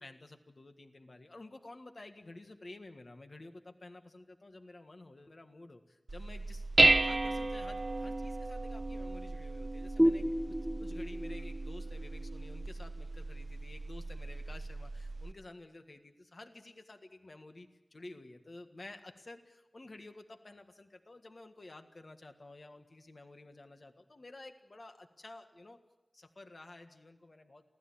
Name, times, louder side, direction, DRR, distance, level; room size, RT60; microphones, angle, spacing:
voice 1, 0.0-6.7 7.0-10.3 10.8-25.8 26.1-27.6, left 2 dB, 60° left, 6 dB, 1.6 m, -52 dB
Dishes pots and pans, 6.1-15.3, right 2 dB, 60° right, 1.0 m, -33 dB
sound 1, 10.0-13.4, equal, 5° right, 0.9 m, -33 dB
23.5 x 16.0 x 8.7 m, 1.1 s
wide cardioid pair, 50°, 0 cm